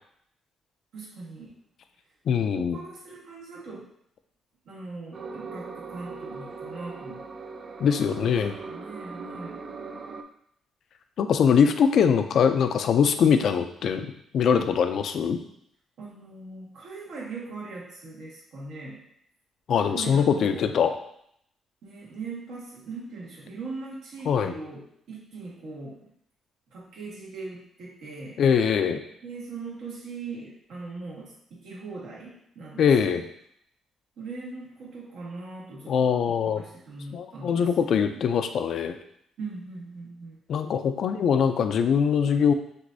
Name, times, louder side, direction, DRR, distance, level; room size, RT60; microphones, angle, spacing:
voice 1, 0.9-1.6 2.4-3.9 4.6-7.2 7.8-9.6 16.0-19.0 19.8-20.7 21.8-26.1 26.7-28.4 29.2-33.3 34.2-38.3 39.4-40.4, right 3 dB, 80° right, -4 dB, 1.4 m, -40 dB
voice 2, 2.3-2.8 7.8-8.6 11.2-15.4 19.7-21.0 24.3-24.5 28.4-29.0 32.8-33.2 35.9-36.6 37.1-39.0 40.5-42.5, left 7 dB, 65° left, 8 dB, 0.4 m, -22 dB
sound 1, 5.1-10.2, right 4 dB, 45° right, 0.4 m, -40 dB
6.2 x 2.6 x 2.6 m, 0.72 s
cardioid pair, 90°, 0 cm